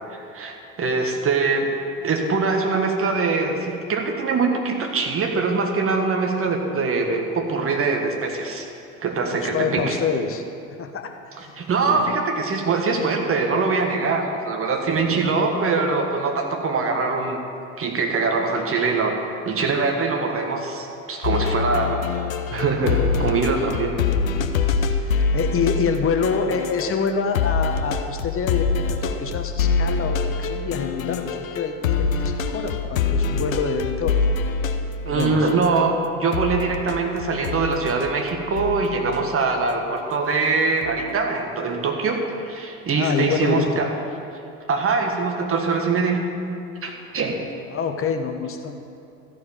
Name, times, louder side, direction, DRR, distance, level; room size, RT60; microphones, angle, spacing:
voice 1, 0.1-1.7 2.0-8.7 9.0-10.0 11.4-17.4 17.8-22.0 22.5-24.0 35.0-43.9 44.7-46.2 46.8-47.4, right 4 dB, 35° right, 3 dB, 1.7 m, -23 dB
voice 2, 9.3-10.4 10.8-11.1 11.4-11.6 11.9-12.0 24.9-34.4 35.0-35.5 42.9-43.7 47.7-48.8, left 5 dB, 35° left, 5 dB, 1.2 m, -26 dB
sound 1, 21.2-27.1 27.3-35.9 36.3-39.5 40.8-41.1, left 5 dB, 85° left, 0.7 m, -25 dB
14.0 x 4.8 x 8.8 m, 2.6 s
hypercardioid pair, 70°, 40 cm